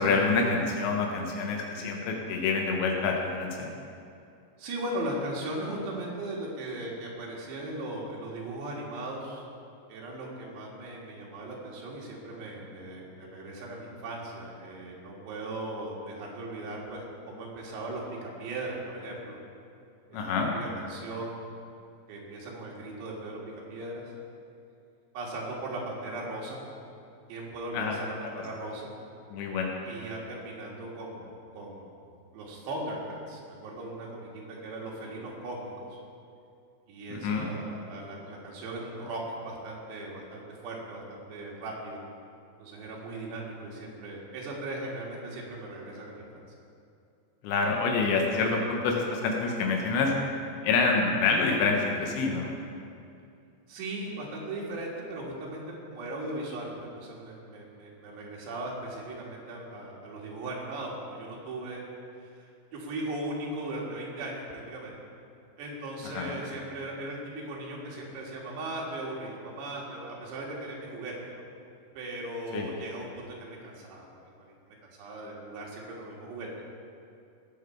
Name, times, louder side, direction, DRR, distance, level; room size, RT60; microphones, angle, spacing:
voice 1, 0.0-3.7 20.1-20.6 27.7-28.0 28.2-28.4 29.3-29.8 37.1-37.5 47.4-50.1 50.6-52.5 66.0-66.4 72.5-72.7, left 4 dB, 85° left, 1 dB, 3.4 m, -27 dB
voice 2, 4.6-9.4 9.9-19.4 20.1-21.4 22.1-23.4 23.7-24.0 25.1-26.6 27.3-28.9 29.8-31.8 32.3-36.0 36.9-42.0 42.6-46.4 53.7-61.8 62.2-62.3 62.7-64.9 65.6-67.2 67.5-71.5 72.0-74.1 75.0-76.5, right 1 dB, 75° right, -3 dB, 4.0 m, -38 dB
18.5 x 7.3 x 4.5 m, 2.5 s
omnidirectional pair, 5.1 m